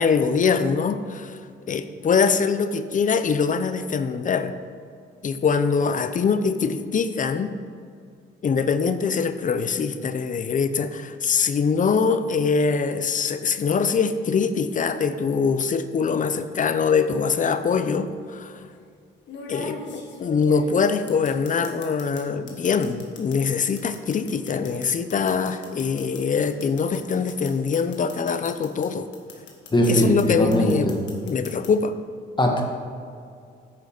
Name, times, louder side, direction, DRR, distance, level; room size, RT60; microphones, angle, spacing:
voice 1, 0.0-1.4 1.7-4.5 5.2-7.5 8.4-18.6 19.5-29.1 29.9-30.9 31.2-31.9, left 5 dB, 40° left, 11 dB, 0.7 m, -23 dB
sound 1, 16.1-16.4 17.6-17.7 19.3-22.2 22.5-28.9 29.1-30.2 30.5-31.7, left 3 dB, 65° left, 1.7 m, -40 dB
voice 2, 29.7-31.0 32.4-32.6, equal, 25° left, 1 dB, 1.8 m, -20 dB
9.6 x 6.5 x 5.2 m, 2.3 s
cardioid pair, 90°, 20 cm